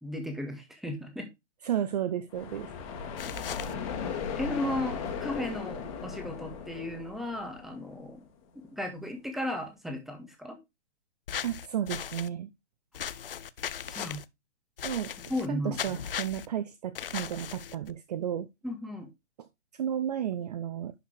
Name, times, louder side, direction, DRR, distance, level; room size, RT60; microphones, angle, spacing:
voice 1, 0.0-1.3 4.3-8.2 8.7-10.6 13.9-14.2 15.3-15.8 18.6-19.1, left 1 dB, ahead, 1.7 m, -35 dB
voice 2, 1.6-2.7 11.4-12.5 14.8-15.1 15.5-18.5 19.4-19.5 19.7-20.9, right 10 dB, 35° right, 0.7 m, -33 dB
sound 1, 2.3-8.1, left 6 dB, 30° left, 2.3 m, -37 dB
sound 2, 3.2-3.7 11.3-12.3 12.9-14.2 14.8-15.5 15.7-16.5 16.9-17.9, left 9 dB, 50° left, 0.7 m, -37 dB
11.0 x 5.7 x 3.3 m
figure-of-eight pair, 125°, 35 cm